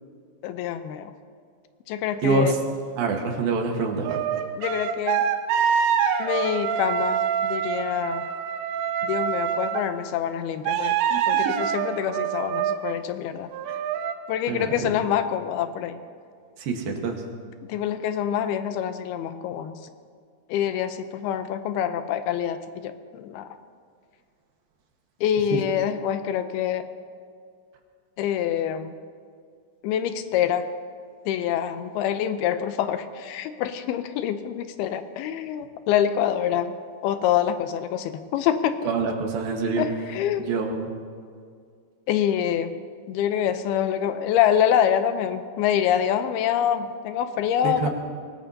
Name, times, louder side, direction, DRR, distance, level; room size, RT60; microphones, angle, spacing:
voice 1, 0.4-1.1 1.9-2.6 4.5-5.2 6.2-8.3 9.0-11.0 11.3-13.5 14.3-16.0 17.7-19.8 20.5-23.5 25.2-26.9 28.2-29.0 29.8-30.7 31.3-36.8 37.0-38.9 39.8-40.6 42.1-42.8 43.1-47.9, left 9 dB, 85° left, 9 dB, 2.7 m, -26 dB
voice 2, 2.2-2.5 3.0-4.2 11.1-11.2 11.5-11.6 13.7-13.8 14.5-15.0 16.6-17.2 38.8-39.8 40.4-40.9 47.6-47.9, right 4 dB, 70° right, 2 dB, 3.2 m, -26 dB
sound 1, 4.0-9.8 10.7-13.0 13.5-14.1, right 8 dB, 90° right, 2.8 m, -25 dB
23.5 x 18.5 x 2.8 m, 2.2 s
omnidirectional pair, 4.4 m